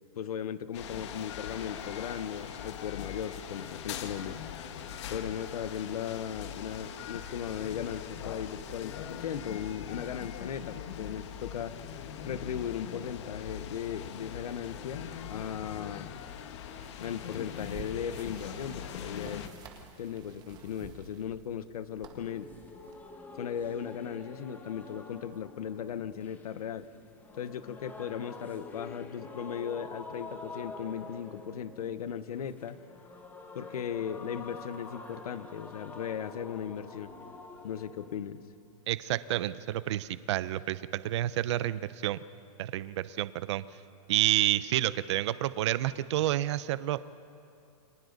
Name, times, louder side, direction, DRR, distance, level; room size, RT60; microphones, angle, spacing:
voice 1, 0.1-4.4 5.1-11.8 12.2-16.2 17.0-19.5 20.0-22.5 23.3-26.9 27.3-32.8 33.5-37.1 37.6-38.4, left 8 dB, 85° left, 12 dB, 1.2 m, -37 dB
sound 1, 0.7-19.5, left 8 dB, 50° left, 1.6 m, -41 dB
sound 2, 16.8-22.9, right 5 dB, 20° right, 1.7 m, -51 dB
sound 3, 21.9-38.2, left 3 dB, 10° left, 1.3 m, -47 dB
voice 2, 38.9-42.2 42.6-43.6 44.1-47.0, right 13 dB, 50° right, 15 dB, 0.7 m, -29 dB
29.5 x 23.5 x 4.0 m, 2.5 s
supercardioid pair, 160°, 19 cm